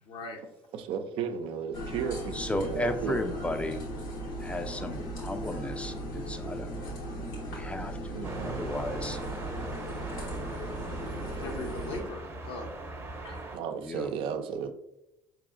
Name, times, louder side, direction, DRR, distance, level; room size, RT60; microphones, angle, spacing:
voice 1, 0.1-0.4 11.4-12.7 13.2-13.5, left 2 dB, 60° left, 3 dB, 0.8 m, -39 dB
voice 2, 0.7-3.6 8.1-8.7 13.5-14.7, right 7 dB, 60° right, 8 dB, 0.5 m, -35 dB
sound 1, 1.7-12.0, right 1 dB, 80° left, 1.1 m, -37 dB
voice 3, 2.3-3.8 4.4-6.7 7.5-8.2 8.5-9.2 13.9-14.1, left 1 dB, 10° left, 8 dB, 0.5 m, -34 dB
sound 2, 8.2-13.6, right 2 dB, 25° right, 0.8 m, -40 dB
4.7 x 2.9 x 2.5 m, 0.85 s
hypercardioid pair, 65°, 10 cm